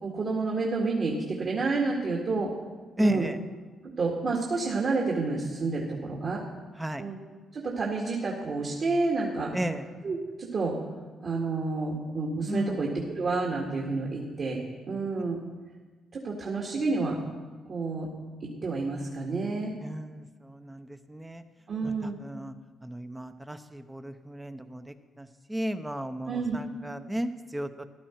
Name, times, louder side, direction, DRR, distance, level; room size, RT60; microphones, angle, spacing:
voice 1, 0.0-2.5 3.0-3.3 3.8-6.4 7.0-7.2 7.5-9.5 10.0-10.8 11.2-15.4 16.1-17.2 17.7-18.1 18.4-19.7 21.7-22.2 26.3-26.6, right 3 dB, 50° right, -2 dB, 2.0 m, -29 dB
voice 2, 3.0-3.4 6.8-7.0 9.5-9.8 12.5-12.8 19.8-21.4 21.8-22.5 22.8-27.8, equal, 10° right, 8 dB, 0.8 m, -34 dB
15.0 x 11.5 x 4.5 m, 1.3 s
cardioid pair, 90°, 0 cm